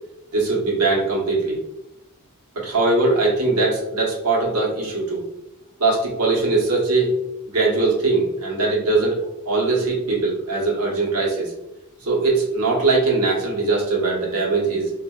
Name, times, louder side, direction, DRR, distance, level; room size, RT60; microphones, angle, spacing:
voice 1, 0.3-1.6 2.5-5.2 5.8-7.1 7.5-9.2 9.4-11.5 12.0-14.9, right 3 dB, 80° right, -4 dB, 1.1 m, -21 dB
3.9 x 2.5 x 2.3 m, 0.89 s
head